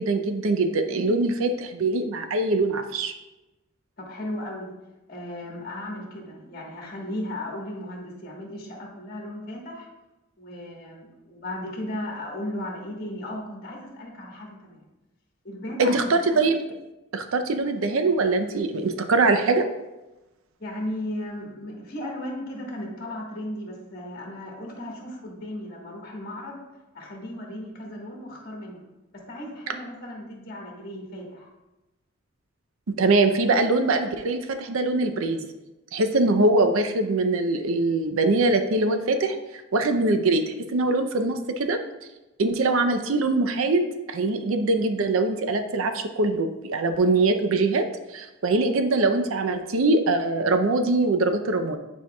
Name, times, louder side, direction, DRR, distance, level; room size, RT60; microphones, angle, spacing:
voice 1, 0.0-3.1 15.8-16.6 17.1-19.7 33.0-35.5 35.9-39.4 39.7-40.4 40.7-41.8 42.4-47.9 48.1-51.8, right 3 dB, 75° right, 7 dB, 0.6 m, -23 dB
voice 2, 4.0-4.7 5.1-9.9 10.4-14.9 15.4-16.4 20.6-26.6 26.9-28.9 29.1-31.5, left 1 dB, 45° left, -1 dB, 1.4 m, -36 dB
9.5 x 4.5 x 2.3 m, 1.0 s
head